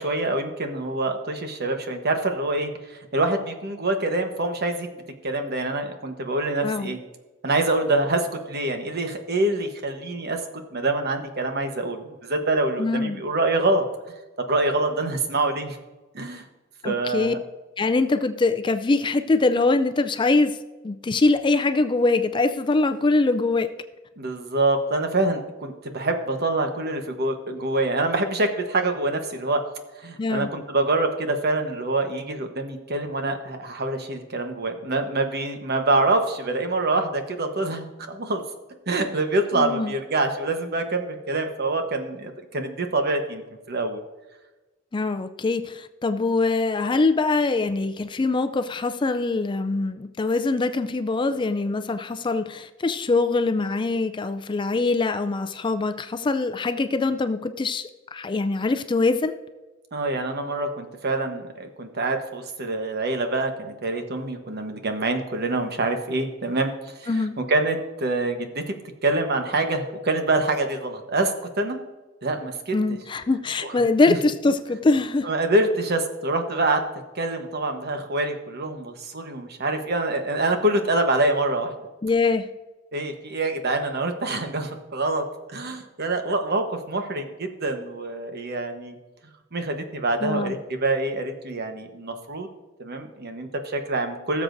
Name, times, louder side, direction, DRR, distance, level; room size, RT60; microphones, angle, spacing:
voice 1, 0.0-7.0 7.4-10.4 10.7-13.8 14.4-15.8 16.1-16.4 16.8-17.4 24.2-29.6 30.0-38.4 38.9-43.4 43.7-44.0 59.9-66.7 67.0-67.1 67.4-68.7 69.0-71.8 72.2-72.7 73.6-73.8 74.1-74.2 75.2-76.8 77.1-81.7 82.9-89.0 89.5-92.5 92.8-94.4, right 2 dB, 50° right, 6 dB, 1.1 m, -25 dB
voice 2, 12.8-13.2 16.8-17.3 17.8-20.6 20.8-23.7 30.2-30.5 39.5-39.9 44.9-59.4 67.1-67.4 72.7-75.3 82.0-82.4 90.2-90.5, left 3 dB, 25° left, 10 dB, 0.4 m, -23 dB
18.0 x 7.2 x 2.6 m, 1.1 s
head